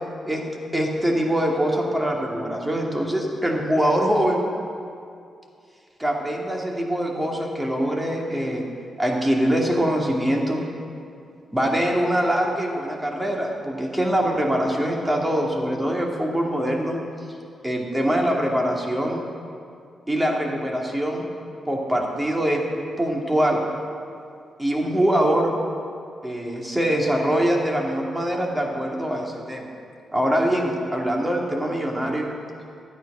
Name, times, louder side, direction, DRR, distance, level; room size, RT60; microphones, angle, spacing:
voice 1, 0.7-4.5 6.0-8.6 9.0-10.6 11.5-17.0 17.6-19.2 20.1-21.3 21.7-22.6 23.0-23.6 24.6-25.6 26.2-29.6 30.1-32.3, equal, 15° right, -1 dB, 2.7 m, -23 dB
12.5 x 9.3 x 6.2 m, 2.4 s
supercardioid pair, 45°, 0 cm